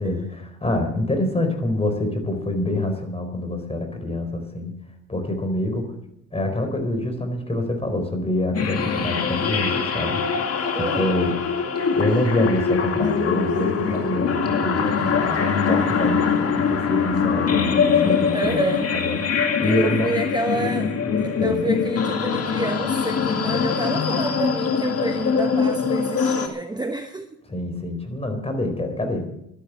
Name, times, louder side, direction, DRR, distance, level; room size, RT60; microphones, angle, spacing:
voice 1, 0.0-4.8 5.1-5.9 6.3-10.2 10.7-11.3 11.9-18.6 18.9-20.1 21.4-21.6 27.5-29.3, left 1 dB, 20° left, 6 dB, 4.3 m, -26 dB
sound 1, 8.5-26.5, left 6 dB, 50° left, 2.3 m, -23 dB
voice 2, 10.7-11.2 18.3-18.9 19.6-27.3, right 2 dB, 15° right, 6 dB, 1.1 m, -29 dB
12.5 x 11.5 x 7.5 m, 0.78 s
cardioid pair, 90°, 30 cm